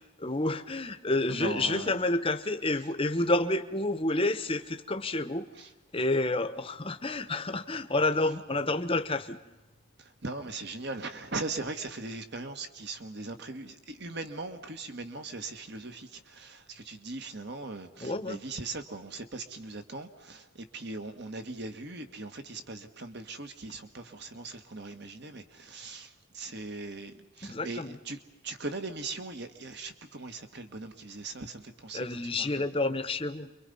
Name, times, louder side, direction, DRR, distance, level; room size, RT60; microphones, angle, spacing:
voice 1, 0.2-5.5 5.9-9.4 18.0-18.4 27.4-27.9 31.9-33.5, left 2 dB, 25° left, 10 dB, 1.0 m, -29 dB
voice 2, 1.3-2.0 5.6-5.7 10.0-32.1 32.4-32.7, right 3 dB, 55° right, 7 dB, 1.7 m, -40 dB
29.0 x 23.5 x 5.5 m, 1.0 s
head